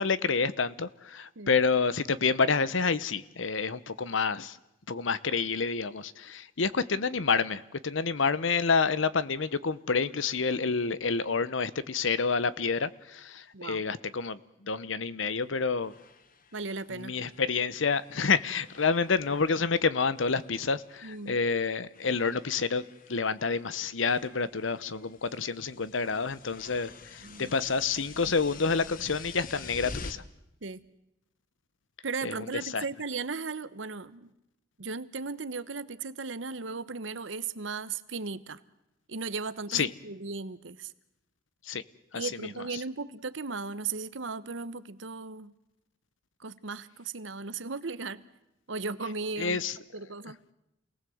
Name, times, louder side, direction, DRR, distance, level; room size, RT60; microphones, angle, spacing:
voice 1, 0.0-4.6 4.9-15.9 16.9-22.8 23.1-30.2 32.2-32.3 32.7-32.8 39.7-39.9 41.7-41.8 42.1-42.5 49.4-49.8, left 5 dB, 85° left, 17 dB, 0.9 m, -28 dB
voice 2, 13.5-13.8 16.5-17.2 21.0-21.4 27.2-27.5 30.6-30.8 32.0-34.3 34.8-38.6 39.1-40.9 42.1-45.5 46.4-48.2 48.7-49.6 49.9-50.4, right 4 dB, 80° right, 14 dB, 1.1 m, -36 dB
sound 1, 15.3-15.4 15.8-18.2 18.5-19.8 20.1-21.3 21.9-30.1, left 3 dB, 45° left, 1.4 m, -48 dB
28.5 x 19.0 x 7.9 m, 0.89 s
head